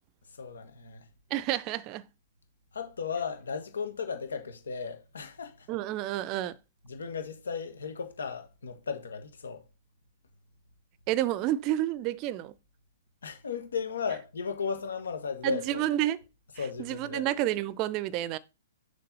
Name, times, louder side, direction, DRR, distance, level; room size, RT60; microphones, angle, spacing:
voice 1, 0.4-1.0 2.7-5.7 6.8-9.6 13.2-15.8 16.6-17.2, left 6 dB, 70° left, 1.5 m, -35 dB
voice 2, 1.3-2.0 5.7-6.5 11.1-12.5 15.4-16.2 16.8-18.4, right 14 dB, 35° right, 0.5 m, -29 dB
6.7 x 3.3 x 5.4 m
figure-of-eight pair, 110°, 0 cm